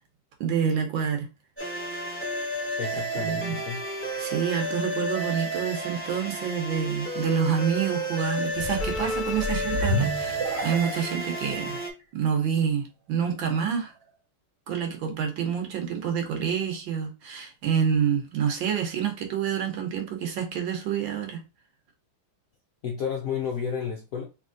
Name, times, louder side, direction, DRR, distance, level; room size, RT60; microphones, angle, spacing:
voice 1, 0.4-1.3 3.2-3.6 4.2-11.8 12.1-13.9 14.7-21.4, right 7 dB, 70° right, 1.6 m, -27 dB
sound 1, 1.6-11.9, right 1 dB, 10° left, 1.1 m, -31 dB
voice 2, 2.8-3.8 22.8-24.2, left 7 dB, 65° left, 0.8 m, -31 dB
sound 2, 8.5-11.1 11.8-11.9, right 1 dB, 50° right, 0.8 m, -30 dB
3.6 x 3.1 x 3.7 m
omnidirectional pair, 2.2 m